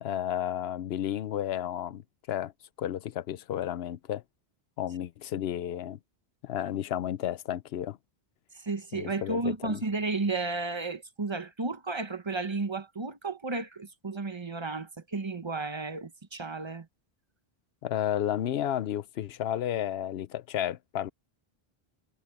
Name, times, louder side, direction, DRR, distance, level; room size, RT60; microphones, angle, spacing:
voice 1, 0.0-2.0 2.3-2.5 2.8-4.2 4.8-6.0 6.4-8.0 8.9-9.8 17.8-21.1, left 11 dB, 80° left, 0.9 m, -32 dB
voice 2, 8.5-16.9, right 3 dB, 30° right, 1.0 m, -33 dB
omnidirectional pair, 1.0 m